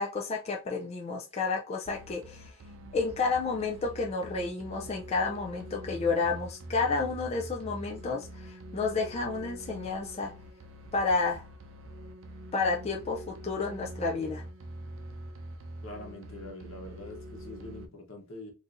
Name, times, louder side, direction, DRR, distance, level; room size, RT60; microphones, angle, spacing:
voice 1, 0.0-2.5 2.9-10.3 10.9-11.4 12.5-14.4, left 4 dB, 30° left, 0 dB, 0.4 m, -31 dB
sound 1, 1.9-17.9, right 1 dB, 75° right, 0.5 m, -44 dB
voice 2, 15.8-18.5, left 2 dB, 80° left, 2 dB, 1.0 m, -44 dB
3.8 x 2.6 x 2.5 m, 0.30 s
head